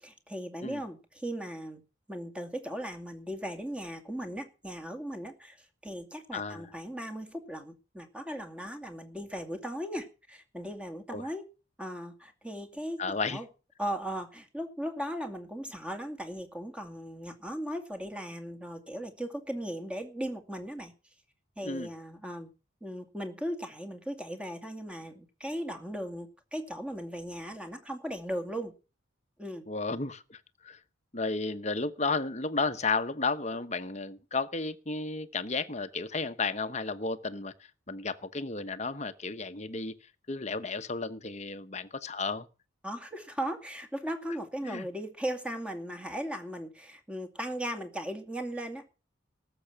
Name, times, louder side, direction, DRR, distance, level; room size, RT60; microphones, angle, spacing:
voice 1, 0.0-1.8 2.1-11.4 11.8-13.5 13.8-20.9 21.6-22.5 22.8-28.7 29.4-29.6 42.8-48.9, equal, 5° right, 2.2 m, -37 dB
voice 2, 6.3-6.7 11.1-11.2 13.0-13.4 21.6-21.9 29.7-30.8 31.1-37.5 37.9-39.9 40.3-42.5 44.6-44.9, left 3 dB, 35° left, 1.1 m, -33 dB
19.0 x 7.9 x 5.9 m
head